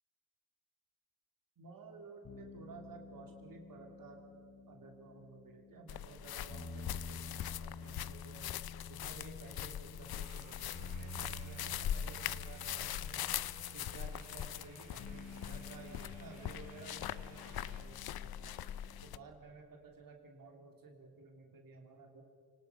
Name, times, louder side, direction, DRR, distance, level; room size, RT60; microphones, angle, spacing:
voice 1, 1.6-4.2 4.7-8.5 8.9-13.4 13.7-18.6 19.0-22.2, right 4 dB, 65° right, 2 dB, 2.4 m, -54 dB
sound 1, 2.2-19.2, left 2 dB, 45° left, 3.0 m, -51 dB
sound 2, 5.9-19.2, left 11 dB, 80° left, 0.6 m, -42 dB
sound 3, 10.2-17.8, right 4 dB, 50° right, 4.0 m, -62 dB
29.5 x 18.5 x 5.6 m, 2.4 s
wide cardioid pair, 165°, 36 cm